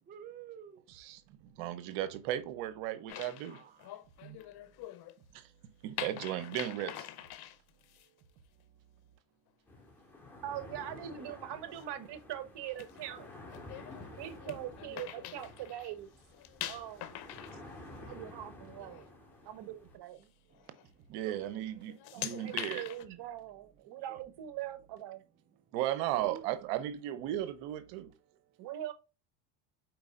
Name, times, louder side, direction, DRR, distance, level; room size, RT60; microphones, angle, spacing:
voice 1, 0.1-0.9 3.5-4.0 4.3-4.5 11.2-11.4 20.5-21.4 24.1-24.2 26.1-26.4, right 8 dB, 20° right, 0.5 m, -50 dB
voice 2, 0.9-1.2 1.6-3.6 4.2-4.4 5.3-7.1 21.1-22.9 25.7-28.1, right 13 dB, 80° right, 0.8 m, -36 dB
sound 1, 3.1-5.2 6.0-8.1 11.0-11.3 11.7-11.9 12.6-15.9 16.2-18.4 18.7-19.1 19.5-19.6 20.5-20.9 21.3-21.6 21.8-23.0, left 13 dB, 55° left, 0.8 m, -44 dB
sound 2, 9.7-20.0, left 2 dB, 5° left, 2.3 m, -51 dB
voice 3, 10.4-13.3 13.8-13.9 14.2-16.1 16.7-17.2 18.0-19.1 19.4-20.3 22.1-25.2 28.6-28.9, right 11 dB, 60° right, 1.1 m, -42 dB
4.6 x 4.6 x 2.5 m
supercardioid pair, 85°, 46 cm